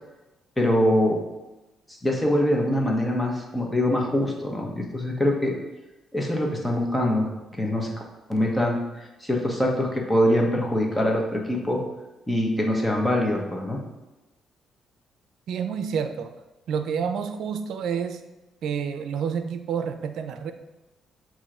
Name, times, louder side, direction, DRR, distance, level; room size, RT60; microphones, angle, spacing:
voice 1, 0.6-1.2 2.0-5.5 6.1-7.9 8.3-11.8 12.3-13.8, left 1 dB, 10° left, 0 dB, 1.3 m, -24 dB
voice 2, 15.5-16.3 16.7-18.2 18.6-20.5, right 7 dB, 75° right, 9 dB, 0.5 m, -29 dB
7.4 x 3.0 x 4.4 m, 1.0 s
cardioid pair, 90°, 0 cm